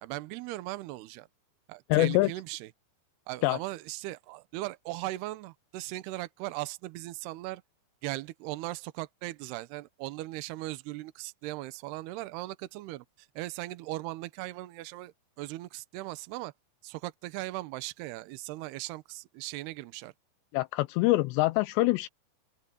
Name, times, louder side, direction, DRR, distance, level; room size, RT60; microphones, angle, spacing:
voice 1, 0.0-1.3 1.7-2.7 3.3-7.6 8.0-16.5 16.8-20.1, right 18 dB, 75° right, 2.8 m, -38 dB
voice 2, 1.9-2.3 3.4-3.6 20.5-22.1, left 19 dB, 85° left, 2.8 m, -24 dB
open air
omnidirectional pair, 5.1 m